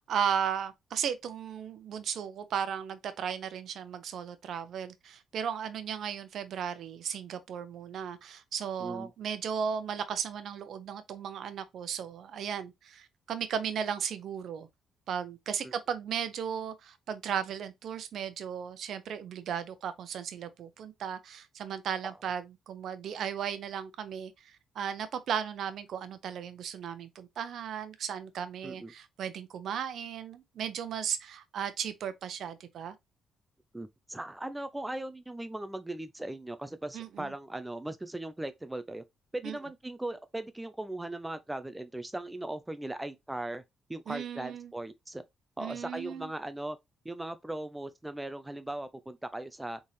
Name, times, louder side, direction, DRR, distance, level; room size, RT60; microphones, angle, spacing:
voice 1, 0.1-14.7 15.1-33.0 36.9-37.3 39.4-39.6 44.1-44.7 45.6-46.3, right 8 dB, 70° right, 0.7 m, -35 dB
voice 2, 33.7-39.0 39.3-43.6 43.9-45.2 45.6-46.8 47.0-49.8, right 1 dB, 10° right, 0.5 m, -38 dB
4.0 x 3.7 x 3.2 m
cardioid pair, 75°, 0 cm